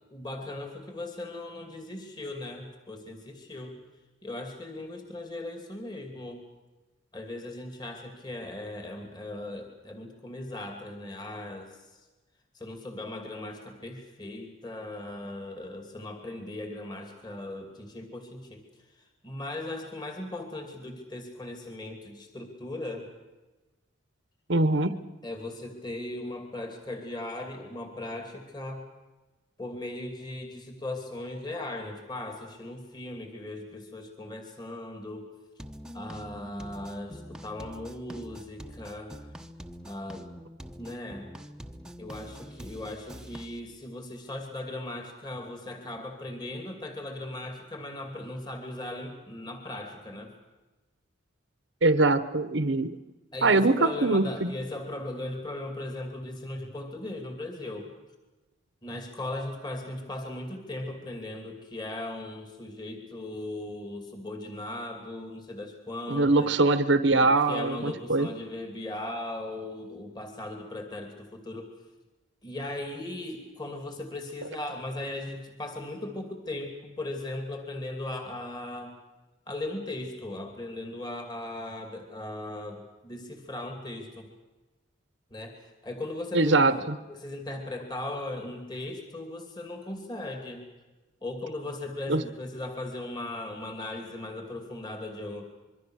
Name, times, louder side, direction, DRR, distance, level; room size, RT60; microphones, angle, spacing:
voice 1, 0.1-3.8 4.2-6.4 7.1-12.0 12.5-18.6 18.9-23.1 25.2-28.8 29.6-35.3 35.9-39.1 39.8-40.3 40.8-41.3 42.0-50.3 53.3-57.9 58.8-66.5 67.1-71.7 72.4-78.9 79.5-84.3 85.3-90.6 91.2-95.5, left 1 dB, 20° left, 4 dB, 2.7 m, -38 dB
voice 2, 24.5-25.0 51.8-52.9 53.4-54.5 66.1-68.3 86.3-86.9 92.1-92.2, right 2 dB, 65° right, 12 dB, 1.0 m, -22 dB
sound 1, 35.6-43.6, equal, 5° right, 1.0 m, -44 dB
26.0 x 23.0 x 6.5 m, 1.1 s
head